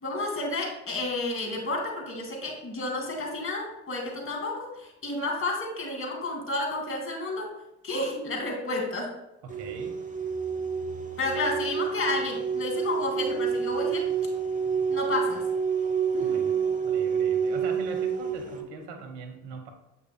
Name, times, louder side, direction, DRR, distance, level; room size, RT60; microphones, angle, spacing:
voice 1, 0.0-7.5 7.8-9.1 11.2-14.1 14.9-15.4 16.1-16.4, left 2 dB, 40° left, 0 dB, 2.4 m, -31 dB
voice 2, 9.4-10.0 16.2-16.6 16.8-19.7, right 4 dB, 85° right, 5 dB, 0.9 m, -41 dB
sound 1, 9.5-18.6, right 6 dB, 25° right, 1.1 m, -28 dB
7.9 x 5.6 x 2.2 m, 0.87 s
hypercardioid pair, 45°, 33 cm